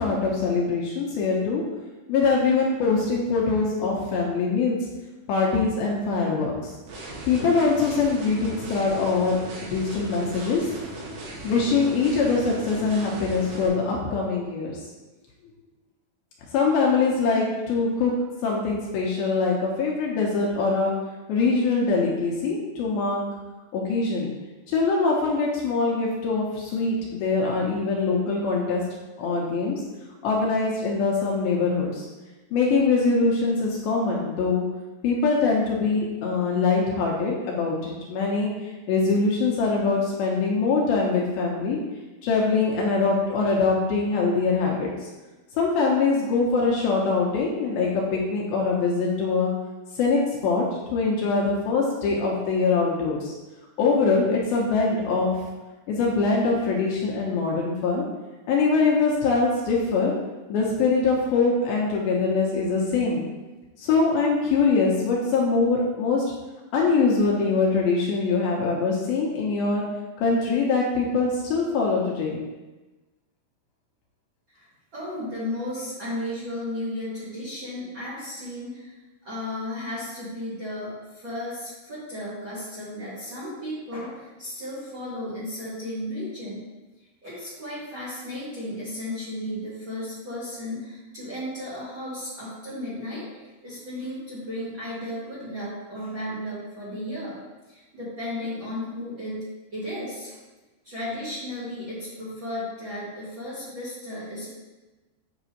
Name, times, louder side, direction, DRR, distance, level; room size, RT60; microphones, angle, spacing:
voice 1, 0.0-1.6 2.1-4.9 5.3-6.7 7.2-10.7 11.4-14.8 16.5-18.1 18.4-20.9 21.3-23.2 23.7-24.3 24.7-28.8 29.2-29.8 30.2-32.1 32.5-34.6 35.0-41.8 42.2-45.1 45.6-49.5 49.9-50.6 50.9-53.3 53.8-55.3 55.9-58.1 58.5-60.1 60.5-63.3 63.8-66.2 66.7-69.8 70.2-72.4, left 4 dB, 75° left, -2 dB, 2.4 m, -23 dB
sound 1, 6.9-13.7, right 1 dB, 90° right, 3.8 m, -38 dB
voice 2, 74.5-78.9 79.2-86.6 87.2-93.3 93.6-97.4 97.7-99.4 99.7-100.4 100.8-104.5, left 1 dB, 40° right, -9 dB, 1.8 m, -34 dB
8.0 x 5.9 x 2.9 m, 1.2 s
omnidirectional pair, 4.8 m